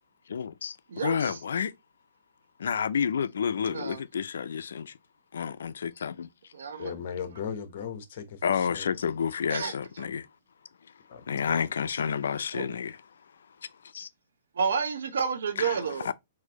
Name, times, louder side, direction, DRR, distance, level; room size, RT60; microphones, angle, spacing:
voice 1, 0.3-1.8 2.6-4.9 5.3-6.3 8.4-10.3 11.3-13.0 13.9-14.1 15.6-16.1, left 7 dB, 85° left, 0.3 m, -30 dB
voice 2, 0.9-1.4 3.6-4.0 6.5-6.9 9.5-9.7 12.5-12.7 14.6-16.1, right 6 dB, 85° right, 0.8 m, -30 dB
voice 3, 6.8-8.9 11.1-11.7, left 7 dB, 55° left, 0.9 m, -38 dB
4.0 x 2.6 x 2.8 m
hypercardioid pair, 150°, 0 cm